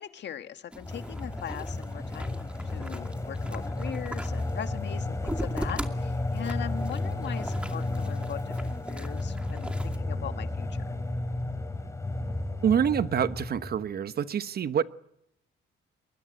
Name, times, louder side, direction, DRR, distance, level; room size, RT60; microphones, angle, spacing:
voice 1, 0.0-2.4 2.7-10.8, left 9 dB, 65° left, 9 dB, 1.7 m, -40 dB
sound 1, 0.7-10.0, right 1 dB, 5° right, 2.5 m, -41 dB
sound 2, 0.8-13.9, left 2 dB, 15° left, 3.1 m, -33 dB
voice 2, 12.6-14.8, right 8 dB, 50° right, 14 dB, 1.0 m, -26 dB
22.5 x 21.0 x 9.3 m, 0.79 s
cardioid pair, 90°, 20 cm